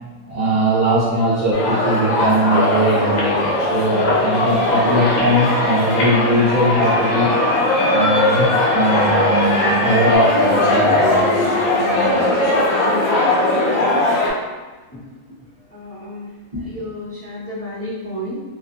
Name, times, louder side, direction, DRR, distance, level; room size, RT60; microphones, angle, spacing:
voice 1, 0.3-7.3 7.9-12.6, right 1 dB, 45° right, -11 dB, 0.5 m, -20 dB
sound 1, 1.5-14.3, left 2 dB, 75° left, 1.0 m, -19 dB
sound 2, 2.5-10.2, left 1 dB, 50° left, 0.5 m, -24 dB
Ringtone, 7.3-7.4 8.0-8.3 8.6-8.7 9.0-9.1 9.7-10.0 10.3-10.4 10.7-10.9 11.4-11.7 12.0-12.1 12.4-12.6 13.1-13.4 13.7-13.9, right 3 dB, 70° right, 1.0 m, -39 dB
voice 2, 15.7-16.3 16.6-18.4, equal, 10° left, -13 dB, 0.8 m, -31 dB
2.5 x 2.4 x 2.5 m, 1.3 s
omnidirectional pair, 1.5 m